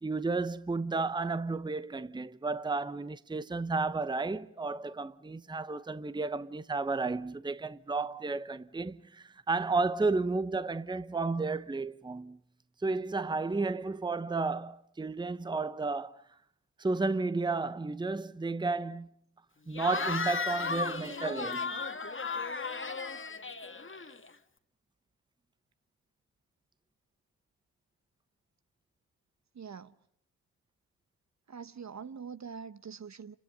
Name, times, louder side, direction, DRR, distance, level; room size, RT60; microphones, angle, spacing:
voice 1, 0.0-12.4 12.8-16.1 16.8-19.1 19.7-21.8, right 3 dB, 10° right, 0.9 m, -32 dB
Cheering / Crowd, 19.7-24.4, left 4 dB, 25° left, 2.0 m, -35 dB
voice 2, 29.5-29.9 31.5-33.4, right 6 dB, 40° right, 1.0 m, -44 dB
29.5 x 27.5 x 5.5 m
hypercardioid pair, 45°, 45 cm